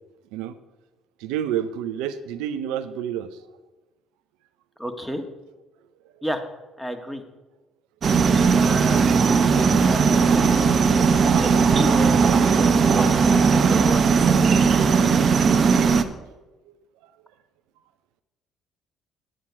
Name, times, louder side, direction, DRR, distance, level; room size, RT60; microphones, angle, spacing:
voice 1, 1.2-3.3 12.0-12.4 15.0-15.1 15.9-16.3 16.7-16.8, right 10 dB, 80° right, 10 dB, 0.6 m, -30 dB
voice 2, 4.8-5.2 6.2-6.4 6.8-7.2 8.5-15.3, equal, 5° left, 6 dB, 1.6 m, -32 dB
sound 1, 8.0-16.0, right 5 dB, 50° right, 0.8 m, -18 dB
Water / Bathtub (filling or washing), 10.4-14.4, left 3 dB, 55° left, 4.7 m, -44 dB
9.3 x 9.0 x 6.0 m, 1.1 s
hypercardioid pair, 55°, 0 cm